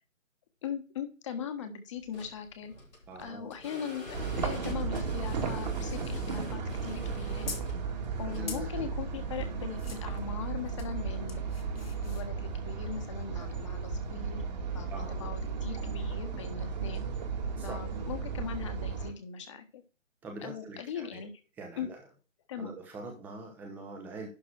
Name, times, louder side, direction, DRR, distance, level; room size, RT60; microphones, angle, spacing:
voice 1, 0.6-2.7 3.2-4.2 4.4-7.5 8.2-11.4 11.7-14.4 14.7-17.0 17.6-19.8 20.4-21.3 21.8-21.9 22.5-22.7, left 7 dB, 25° left, 9 dB, 1.5 m, -40 dB
sound 1, 2.0-9.9, left 1 dB, 85° left, 5.0 m, -47 dB
voice 2, 3.1-3.5 8.3-8.9 14.9-15.3 17.6-17.8 20.2-21.2 21.6-22.0 22.6-24.3, right 3 dB, 5° right, 2 dB, 1.0 m, -43 dB
sound 2, 4.1-19.1, right 5 dB, 35° right, 1.9 m, -35 dB
sound 3, 6.9-7.8 8.5-8.7 9.8-10.2 10.6-10.9 11.3-12.3 13.5-13.6, left 5 dB, 50° left, 2.0 m, -44 dB
11.5 x 3.9 x 6.3 m, 0.32 s
figure-of-eight pair, 145°, 39 cm